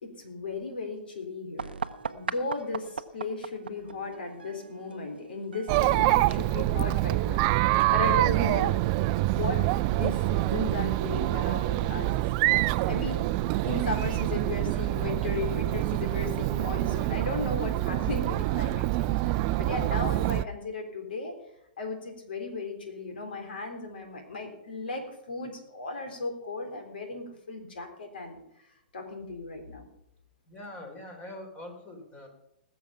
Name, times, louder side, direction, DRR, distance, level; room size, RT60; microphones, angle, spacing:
voice 1, 0.0-1.7 2.1-7.5 7.9-12.2 12.5-21.3 21.8-28.4 28.9-29.9, left 3 dB, 75° left, 4 dB, 3.7 m, -36 dB
sound 1, 1.6-7.1, right 6 dB, 85° right, 0.7 m, -40 dB
Chatter, 5.7-20.4, right 17 dB, 40° right, 0.4 m, -26 dB
voice 2, 30.5-32.3, left 1 dB, 25° left, 4 dB, 3.9 m, -43 dB
20.0 x 7.1 x 5.7 m, 0.81 s
hypercardioid pair, 120°, 5 cm